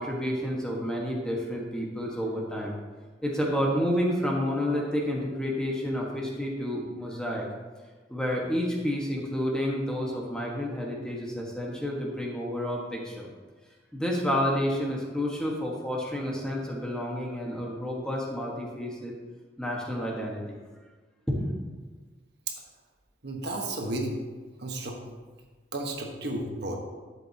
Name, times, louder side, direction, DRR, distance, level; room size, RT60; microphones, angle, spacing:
voice 1, 0.0-2.7 3.2-7.4 8.1-13.3 13.9-19.1 19.6-20.4 21.3-21.5, equal, 5° left, -3 dB, 1.5 m, -30 dB
voice 2, 23.2-24.2 24.6-25.0 25.7-26.8, right 1 dB, 65° right, 1 dB, 1.4 m, -32 dB
11.5 x 7.7 x 2.9 m, 1.3 s
head